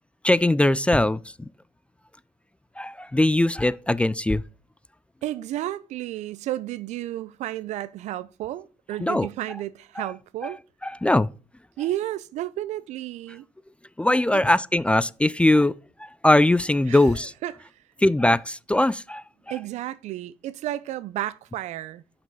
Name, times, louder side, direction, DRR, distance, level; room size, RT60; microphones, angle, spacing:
voice 1, 0.2-1.5 2.8-4.4 9.0-9.3 10.0-10.1 10.4-10.5 10.8-11.3 14.0-15.7 16.0-17.3 18.0-19.2, left 1 dB, 10° left, 0.3 m, -21 dB
voice 2, 5.2-10.6 11.8-13.4 14.3-14.4 16.9-17.7 19.5-22.0, right 14 dB, 70° right, 0.5 m, -32 dB
5.9 x 5.4 x 5.4 m
supercardioid pair, 60°, 12 cm